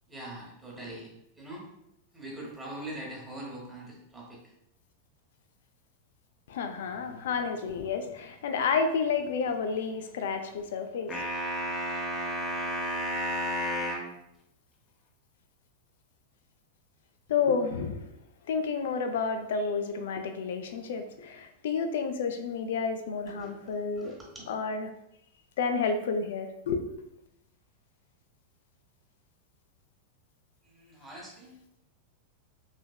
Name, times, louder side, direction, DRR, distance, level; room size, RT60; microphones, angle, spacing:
voice 1, 0.1-1.1 1.4-1.6 2.1-4.4 23.3-24.5 30.6-31.5, right 1 dB, 10° right, 1.0 m, -43 dB
voice 2, 6.5-11.2 17.3-18.0 18.5-24.2 24.5-24.9 25.6-26.8, left 5 dB, 60° left, 0.3 m, -30 dB
sound 1, 11.1-14.1, equal, 20° left, 0.6 m, -32 dB
3.2 x 3.0 x 2.2 m
figure-of-eight pair, 90°, 0 cm